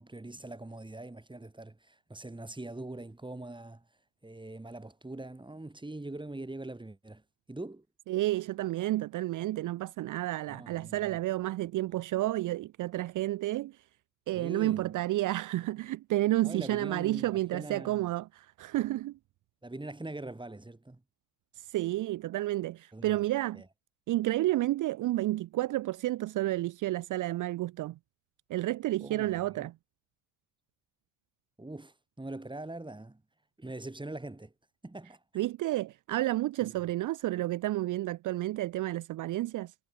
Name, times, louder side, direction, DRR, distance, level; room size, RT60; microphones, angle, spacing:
voice 1, 0.0-3.8 4.2-7.2 7.5-7.9 10.5-11.2 11.9-12.0 14.3-15.0 16.4-18.0 19.6-21.0 22.9-23.2 23.5-23.7 29.0-29.7 31.6-33.2 33.6-34.5 34.8-35.2 36.6-36.7, right 2 dB, 10° right, 6.1 m, -43 dB
voice 2, 8.1-13.8 14.3-19.2 21.5-23.6 24.1-28.0 28.5-29.7 35.3-39.7, right 16 dB, 50° right, 0.8 m, -31 dB
hypercardioid pair, 55°, 40 cm